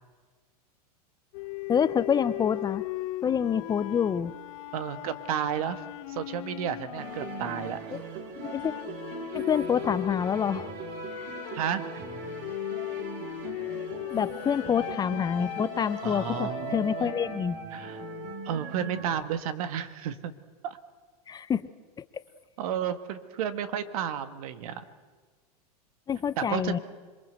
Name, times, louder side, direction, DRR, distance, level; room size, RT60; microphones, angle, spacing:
sound 1, 1.3-7.9 8.4-17.4, left 16 dB, 60° left, 1.0 m, -38 dB
voice 1, 1.7-2.8 3.2-4.3 7.9-8.0 8.4-8.7 9.3-10.7 11.2-11.3 14.1-17.6 21.3-21.7 26.1-26.8, left 7 dB, 20° left, 14 dB, 0.7 m, -27 dB
voice 2, 4.7-5.8 6.1-8.0 11.5-11.8 16.0-17.2 17.7-18.0 18.5-20.3 20.6-20.8 22.6-24.8 26.4-26.8, right 9 dB, 65° right, 10 dB, 1.8 m, -32 dB
sound 2, 7.0-19.2, right 5 dB, 45° right, 3.8 m, -40 dB
26.5 x 22.5 x 8.1 m, 1.5 s
hypercardioid pair, 120°, 20 cm